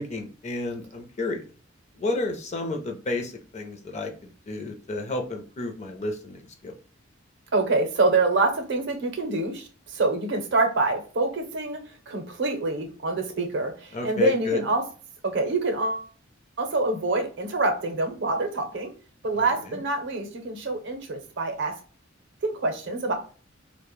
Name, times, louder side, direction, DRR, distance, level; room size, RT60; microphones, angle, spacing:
voice 1, 0.0-1.5 2.0-6.8 13.9-14.6 19.3-19.8, left 2 dB, 35° left, 4 dB, 0.5 m, -31 dB
voice 2, 7.5-11.8 12.1-14.8 15.2-16.1 16.6-18.9 19.2-21.8 22.4-23.1, right 2 dB, 65° right, 5 dB, 0.6 m, -26 dB
2.1 x 2.0 x 2.9 m, 0.38 s
head